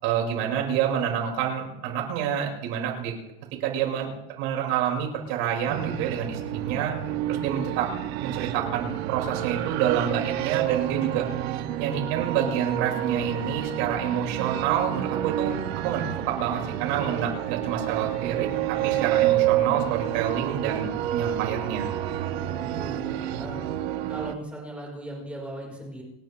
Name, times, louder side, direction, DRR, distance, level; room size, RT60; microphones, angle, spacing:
voice 1, 0.0-3.1 3.6-4.1 4.4-6.9 7.3-7.9 8.2-11.3 11.8-15.5 15.8-21.9, right 9 dB, 60° right, 0 dB, 5.8 m, -28 dB
sound 1, 5.7-24.3, right 12 dB, 90° right, 1.5 m, -29 dB
voice 2, 22.2-23.6 24.1-26.0, right 1 dB, 5° right, -2 dB, 4.9 m, -38 dB
29.0 x 11.5 x 3.5 m, 0.92 s
cardioid pair, 170°, 30 cm